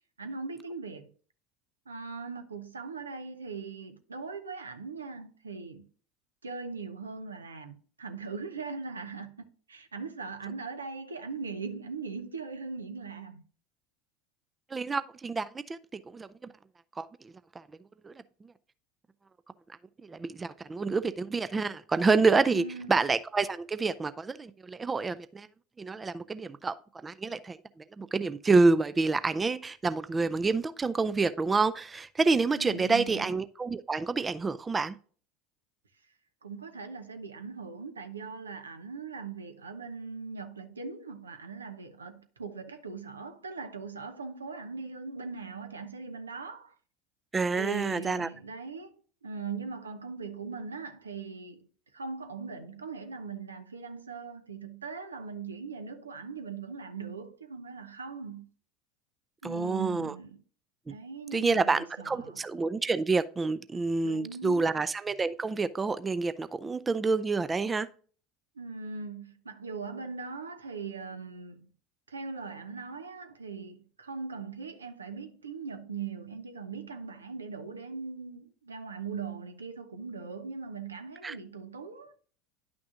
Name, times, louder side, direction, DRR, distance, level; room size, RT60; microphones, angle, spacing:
voice 1, 0.2-1.1 1.9-5.8 6.4-13.4 22.5-22.9 32.6-33.3 36.4-46.7 47.5-48.9 49.2-51.7 51.9-58.5 59.4-60.4 60.9-62.4 64.0-64.7 68.5-71.7 72.1-82.1, right 5 dB, 85° right, 0.8 m, -40 dB
voice 2, 14.7-16.5 17.0-17.7 18.0-18.1 18.4-18.5 20.0-25.5 25.8-26.8 27.0-35.0 47.3-48.3 59.4-60.1 60.9-61.0 61.3-67.9 81.2-81.4, right 4 dB, 20° right, 0.4 m, -28 dB
10.5 x 6.0 x 2.5 m
figure-of-eight pair, 75°, 0 cm